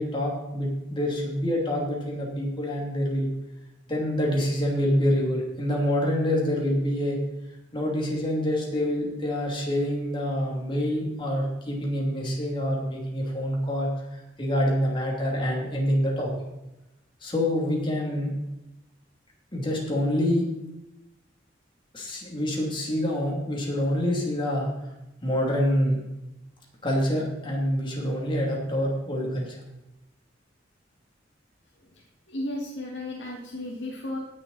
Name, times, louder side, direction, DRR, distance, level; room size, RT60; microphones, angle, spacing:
voice 1, 0.0-3.3 3.9-7.2 7.7-16.3 17.2-18.3 19.5-20.4 21.9-24.7 25.2-26.0 26.8-29.6, equal, 25° left, -2 dB, 2.8 m, -26 dB
voice 2, 32.3-34.2, left 1 dB, 70° left, -3 dB, 2.0 m, -34 dB
17.5 x 6.9 x 4.1 m, 0.94 s
head